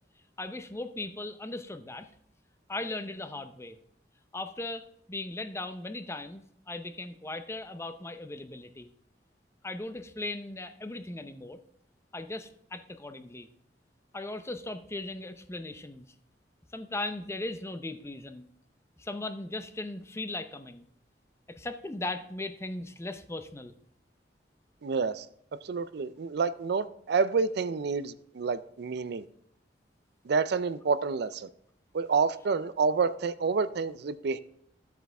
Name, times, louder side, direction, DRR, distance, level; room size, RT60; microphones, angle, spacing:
voice 1, 0.4-2.1 2.7-3.8 4.3-8.9 9.6-11.6 12.1-13.5 14.1-16.1 16.7-18.5 19.0-20.9 21.5-23.7, left 2 dB, 15° left, 0.6 m, -38 dB
voice 2, 24.8-25.3 25.5-29.2 30.2-31.5 31.9-34.4, right 5 dB, 65° right, 0.4 m, -28 dB
13.0 x 8.2 x 3.4 m
head